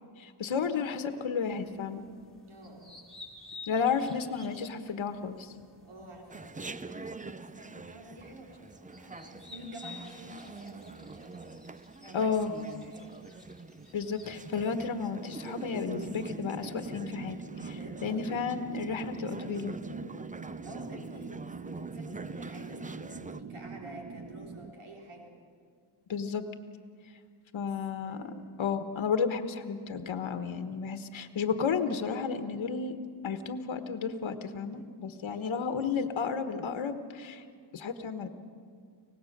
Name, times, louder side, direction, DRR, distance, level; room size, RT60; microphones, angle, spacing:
voice 1, 0.2-2.0 3.6-5.5 12.1-12.5 13.9-19.8 26.1-26.4 27.5-33.0 33.2-37.4 37.7-38.3, left 5 dB, 70° left, 8 dB, 1.4 m, -32 dB
sound 1, 1.4-16.6, left 4 dB, ahead, 3.3 m, -54 dB
voice 2, 2.5-3.0 3.7-3.8 5.8-12.3 12.8-13.4 17.7-18.9 20.6-25.4 27.6-27.7 28.0-28.6 35.3-35.6, right 1 dB, 90° right, 0 dB, 3.8 m, -50 dB
Chatter, 6.3-23.4, right 3 dB, 15° right, 0.6 m, -45 dB
sound 2, 15.7-24.7, right 4 dB, 35° right, 1.1 m, -43 dB
24.5 x 18.0 x 6.6 m, 2.2 s
cardioid pair, 75°, 49 cm